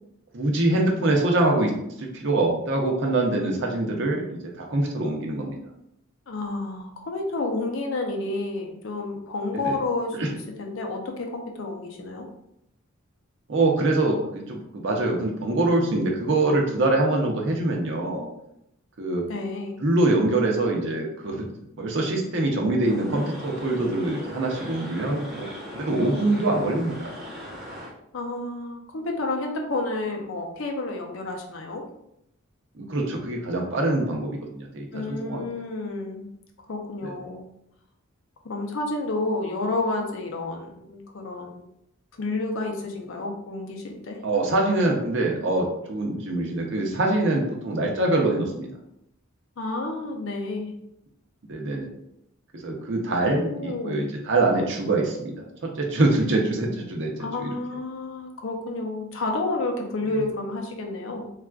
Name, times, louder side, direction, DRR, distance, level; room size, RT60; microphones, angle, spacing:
voice 1, 0.3-1.7 2.0-5.6 9.5-9.8 10.2-10.3 13.5-18.3 19.0-19.3 19.8-21.5 21.8-25.5 25.7-27.0 32.8-35.4 37.0-37.1 44.2-48.7 51.5-51.9 52.5-57.5, right 2 dB, 60° right, 1 dB, 0.6 m, -24 dB
voice 2, 6.3-12.3 19.3-19.8 28.1-31.8 34.9-36.3 36.7-37.5 38.4-41.6 42.1-44.2 49.6-50.7 53.2-54.0 57.2-61.3, left 2 dB, 65° left, 2 dB, 0.5 m, -30 dB
sound 1, 22.8-27.9, equal, ahead, 0.7 m, -39 dB
3.5 x 2.4 x 2.3 m, 0.78 s
head